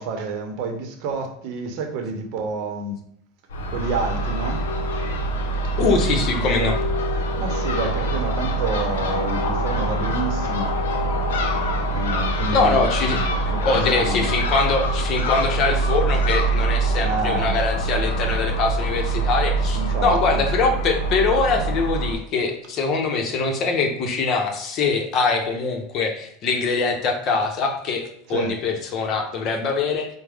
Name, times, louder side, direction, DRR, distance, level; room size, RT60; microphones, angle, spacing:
voice 1, 0.0-3.0 3.7-4.6 5.9-6.7 7.4-10.8 11.9-14.4 17.0-17.6 19.7-20.4 28.3-28.5, right 3 dB, 60° right, 4 dB, 0.7 m, -29 dB
Crow / Gull seagull, 3.5-22.1, right 2 dB, 90° left, 0.6 m, -24 dB
voice 2, 5.8-6.7 12.5-13.2 13.6-28.0 28.3-30.1, left 4 dB, 45° left, 4 dB, 0.8 m, -23 dB
4.6 x 2.1 x 3.5 m, 0.69 s
supercardioid pair, 110°, 0 cm